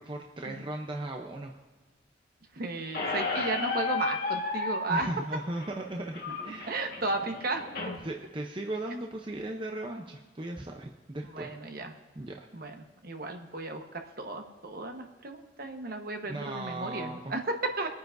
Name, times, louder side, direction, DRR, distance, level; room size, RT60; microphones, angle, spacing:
voice 1, 0.0-1.6 4.9-7.0 8.0-11.5 12.1-12.5 16.2-17.3, right 1 dB, 25° right, 1 dB, 0.7 m, -37 dB
voice 2, 2.5-5.1 6.6-7.6 11.3-11.9 12.5-17.9, right 2 dB, 50° right, 4 dB, 1.1 m, -34 dB
Squeak, 2.9-7.9, left 4 dB, 50° left, 1.6 m, -33 dB
25.5 x 9.4 x 2.6 m, 1.4 s
head